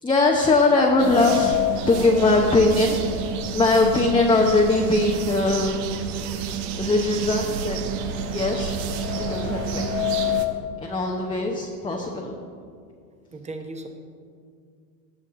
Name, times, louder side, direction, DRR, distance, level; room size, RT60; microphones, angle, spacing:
voice 1, 0.0-1.6 1.9-3.0 3.5-5.8 6.8-7.8 8.3-8.8 9.2-9.9 10.8-12.3, left 2 dB, 10° left, -1 dB, 0.9 m, -21 dB
sound 1, 0.9-4.9 5.3-5.4 6.3-6.4 6.8-10.7, left 14 dB, 45° left, 0.7 m, -30 dB
sound 2, 1.0-10.4, right 8 dB, 55° right, 1.1 m, -30 dB
voice 2, 13.3-13.9, right 2 dB, 15° right, 5 dB, 1.1 m, -36 dB
17.5 x 7.0 x 3.8 m, 2.2 s
hypercardioid pair, 100°, 49 cm